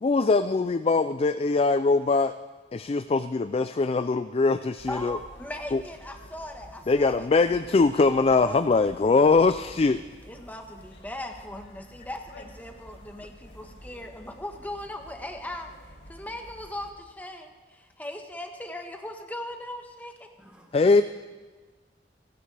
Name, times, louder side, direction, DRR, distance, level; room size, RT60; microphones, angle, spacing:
voice 1, 0.0-2.3 2.7-5.2 5.7-5.8 6.9-10.0 20.7-21.0, left 3 dB, 35° left, 11 dB, 0.4 m, -22 dB
sound 1, 4.8-16.9, equal, 80° left, 2.4 m, -49 dB
voice 2, 4.9-7.3 8.0-8.9 10.2-20.3, left 1 dB, 10° left, 3 dB, 1.3 m, -39 dB
voice 3, 20.4-21.0, equal, 5° right, -3 dB, 2.9 m, -55 dB
30.0 x 11.5 x 3.4 m, 1.3 s
head